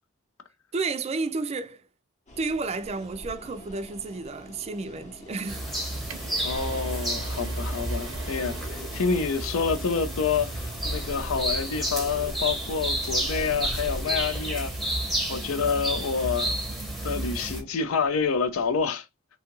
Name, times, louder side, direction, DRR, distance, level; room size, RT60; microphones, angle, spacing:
voice 1, 0.7-1.9 2.4-5.7, right 3 dB, 30° right, 0.4 m, -31 dB
sound 1, 2.3-18.9, left 1 dB, 35° left, 0.8 m, -44 dB
sound 2, 5.2-11.2, right 5 dB, 85° right, 0.6 m, -45 dB
sound 3, 5.5-17.6, right 1 dB, ahead, 0.7 m, -31 dB
voice 2, 6.4-14.7 15.3-16.6 17.0-19.0, left 5 dB, 80° left, 0.5 m, -28 dB
2.7 x 2.3 x 2.9 m
head